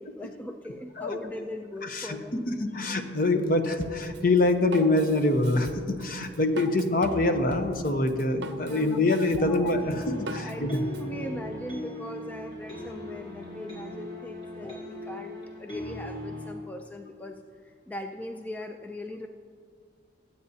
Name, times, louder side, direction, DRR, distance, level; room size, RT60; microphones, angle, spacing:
voice 1, 0.0-2.5 8.6-9.0 9.4-9.7 10.4-19.3, left 1 dB, 10° left, 5 dB, 0.3 m, -40 dB
voice 2, 1.8-2.2 2.5-10.8, left 2 dB, 45° left, 7 dB, 0.8 m, -25 dB
Drum kit, 3.8-11.0, right 2 dB, 60° right, 0.7 m, -41 dB
sound 1, 9.8-16.5, left 1 dB, 25° left, 2.7 m, -39 dB
23.5 x 8.2 x 2.8 m, 2.3 s
head